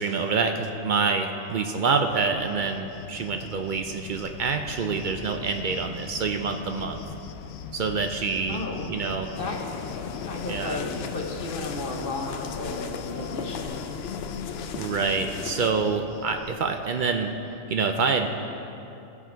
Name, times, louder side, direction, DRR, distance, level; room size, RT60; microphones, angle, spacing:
voice 1, 0.0-7.0 7.7-8.6 8.9-9.3 10.5-10.9 14.7-17.3 17.7-18.3, right 4 dB, 65° right, 5 dB, 0.4 m, -26 dB
Cricket, 1.5-17.2, left 5 dB, 90° left, 1.0 m, -42 dB
voice 2, 8.5-8.9 9.4-9.6 10.2-14.0, left 2 dB, 45° left, 1 dB, 1.1 m, -34 dB
sound 1, 9.3-15.7, left 6 dB, 60° left, 0.7 m, -36 dB
15.5 x 6.0 x 4.5 m, 2.8 s
omnidirectional pair, 1.4 m